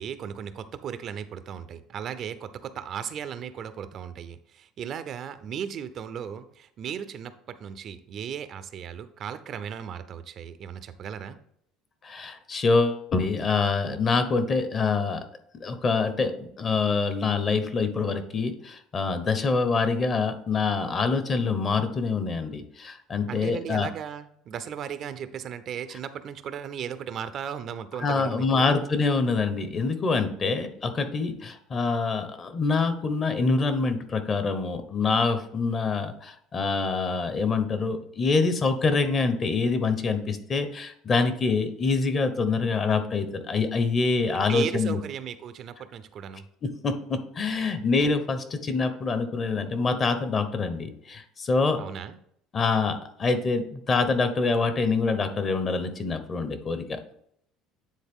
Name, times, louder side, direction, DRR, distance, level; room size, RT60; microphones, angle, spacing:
voice 1, 0.0-11.4 23.3-28.8 44.5-46.4 51.8-52.2, right 8 dB, 45° right, 12 dB, 0.5 m, -36 dB
voice 2, 12.0-15.2 15.6-23.9 28.0-45.0 46.6-51.8 52.5-57.0, left 4 dB, 30° left, 9 dB, 0.8 m, -25 dB
9.3 x 3.8 x 3.6 m, 0.69 s
cardioid pair, 130°, 0 cm